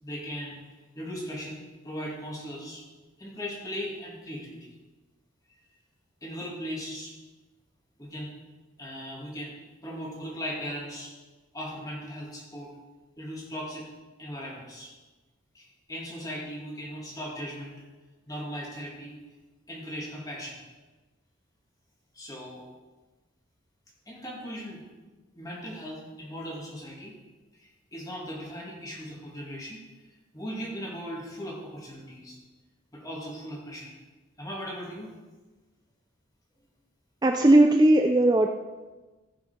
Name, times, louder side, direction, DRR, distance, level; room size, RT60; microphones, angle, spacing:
voice 1, 0.0-2.8 3.2-4.7 6.2-7.1 8.0-8.3 8.8-9.5 9.8-11.1 11.5-12.7 13.2-13.8 14.2-14.9 15.5-17.7 18.3-19.2 19.7-20.6 22.1-22.7 24.1-24.8 25.3-27.1 27.5-29.8 30.1-32.4 32.9-34.0 34.4-35.1, equal, 20° left, -4 dB, 2.7 m, -38 dB
voice 2, 37.2-38.5, right 1 dB, 20° right, 4 dB, 0.4 m, -18 dB
15.0 x 6.0 x 5.2 m, 1.2 s
head